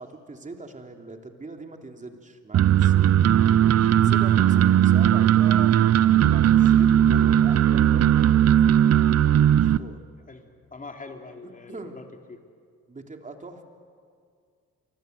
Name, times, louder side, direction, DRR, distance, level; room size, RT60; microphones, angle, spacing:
voice 1, 0.0-3.1 4.0-5.7 6.1-8.4 9.4-10.0 11.7-12.0 12.9-13.6, right 3 dB, 25° right, 4 dB, 3.2 m, -41 dB
sound 1, 2.5-9.8, right 10 dB, 55° right, 0.7 m, -18 dB
voice 2, 10.3-12.4, left 3 dB, 25° left, 4 dB, 3.4 m, -43 dB
29.0 x 24.0 x 8.2 m, 2.2 s
cardioid pair, 90°, 30 cm